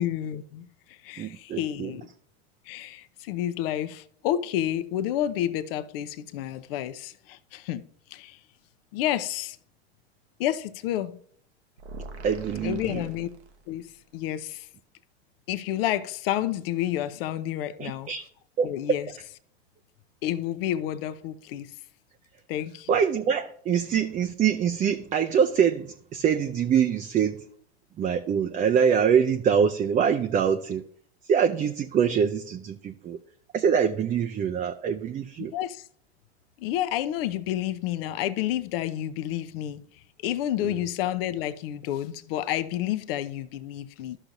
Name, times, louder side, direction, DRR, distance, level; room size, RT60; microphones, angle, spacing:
voice 1, 0.0-2.1 2.7-7.8 8.1-8.4 8.9-9.6 10.4-11.2 12.6-13.3 13.7-14.7 15.5-18.1 18.6-19.1 20.2-21.7 22.5-23.0 35.5-35.8 36.6-39.8 40.2-44.2, left 12 dB, 60° left, 0.7 m, -30 dB
voice 2, 1.2-1.9 12.2-13.0 17.8-18.2 18.6-19.0 22.9-27.5 28.0-30.9 31.2-33.2 33.5-35.5 40.6-40.8, right 7 dB, 25° right, 0.5 m, -24 dB
sound 1, 11.8-13.9, right 2 dB, 85° right, 1.0 m, -43 dB
13.5 x 5.8 x 2.6 m
hypercardioid pair, 100°, 33 cm